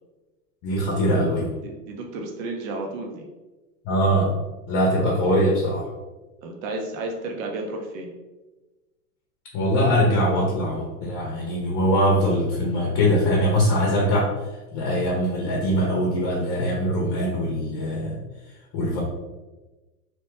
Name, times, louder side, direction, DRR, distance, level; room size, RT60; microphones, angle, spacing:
voice 1, 0.6-1.5 3.8-4.3 4.7-5.9 9.5-14.3 14.7-18.2 18.7-19.0, equal, 35° left, -2 dB, 0.8 m, -22 dB
voice 2, 1.6-3.3 6.4-8.1, right 2 dB, 55° right, 2 dB, 0.7 m, -32 dB
2.9 x 2.1 x 3.2 m, 1.2 s
hypercardioid pair, 110°, 47 cm